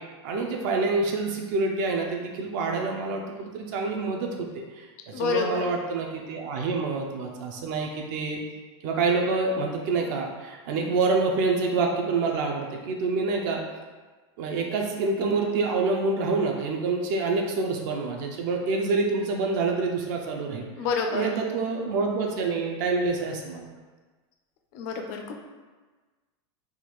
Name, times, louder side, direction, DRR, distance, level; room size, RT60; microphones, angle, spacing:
voice 1, 0.2-4.5 4.7-8.4 8.8-13.6 14.4-20.7 21.1-23.7, right 3 dB, 40° right, 1 dB, 0.3 m, -27 dB
voice 2, 5.1-5.7 20.8-21.3 24.7-25.3, left 5 dB, 35° left, 4 dB, 0.3 m, -28 dB
3.5 x 2.3 x 3.0 m, 1.3 s
supercardioid pair, 170°, 15 cm